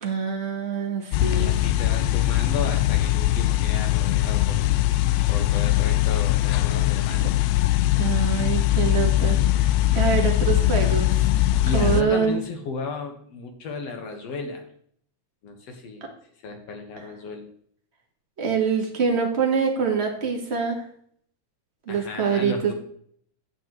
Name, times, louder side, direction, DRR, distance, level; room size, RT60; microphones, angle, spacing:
voice 1, 0.0-1.5 8.0-11.3 11.7-12.4 18.4-20.9 21.9-22.7, right 6 dB, 35° right, 2 dB, 1.1 m, -25 dB
sound 1, 1.1-12.0, left 14 dB, 80° left, 1.6 m, -21 dB
voice 2, 1.3-4.7 5.3-7.3 11.6-14.6 15.4-16.0 16.4-17.5 21.9-22.7, left 3 dB, 60° left, 4 dB, 2.4 m, -34 dB
9.9 x 8.7 x 3.1 m, 0.63 s
omnidirectional pair, 3.4 m